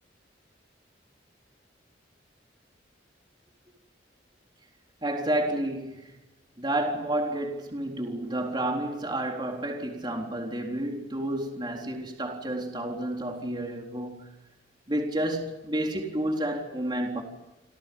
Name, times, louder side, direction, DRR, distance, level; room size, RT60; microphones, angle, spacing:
voice 1, 5.0-6.1 6.6-14.3 14.9-17.2, right 1 dB, 25° right, 3.9 m, -30 dB
29.0 x 25.5 x 5.4 m
head